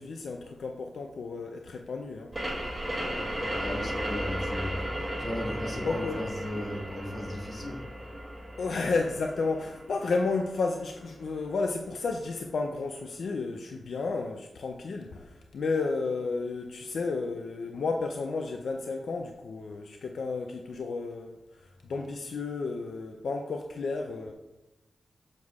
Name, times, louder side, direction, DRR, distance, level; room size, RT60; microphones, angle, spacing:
voice 1, 0.0-2.3 3.1-3.6 5.8-6.2 8.6-24.3, left 3 dB, 80° left, 3 dB, 0.4 m, -32 dB
sound 1, 2.3-11.7, equal, 15° right, 2.0 m, -36 dB
voice 2, 3.5-7.9, left 1 dB, 50° left, -2 dB, 1.5 m, -36 dB
7.3 x 6.2 x 2.4 m, 1.0 s
wide cardioid pair, 130°, 0 cm